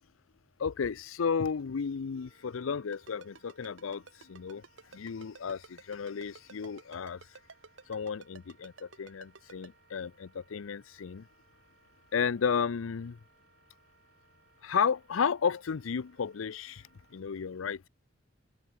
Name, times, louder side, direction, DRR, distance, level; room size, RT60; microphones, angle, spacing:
voice 1, 0.6-4.0 4.3-4.6 4.9-7.2 7.9-11.2 12.1-13.2 14.6-16.8 17.1-17.9, left 6 dB, 90° left, 0.5 m, -33 dB
Wind instrument woodwind instrument, 2.1-17.2, right 5 dB, 55° right, 3.3 m, -67 dB
Ringtone, 2.9-9.7, right 4 dB, 75° right, 3.0 m, -51 dB
head